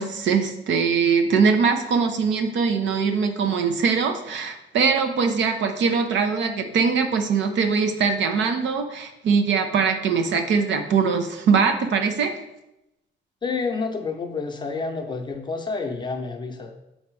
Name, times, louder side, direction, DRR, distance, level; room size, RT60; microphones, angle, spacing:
voice 1, 0.0-12.3, right 5 dB, 70° right, 6 dB, 0.8 m, -22 dB
voice 2, 13.4-16.7, left 4 dB, 25° left, 3 dB, 0.7 m, -29 dB
7.1 x 4.0 x 4.7 m, 0.89 s
cardioid pair, 140°, 20 cm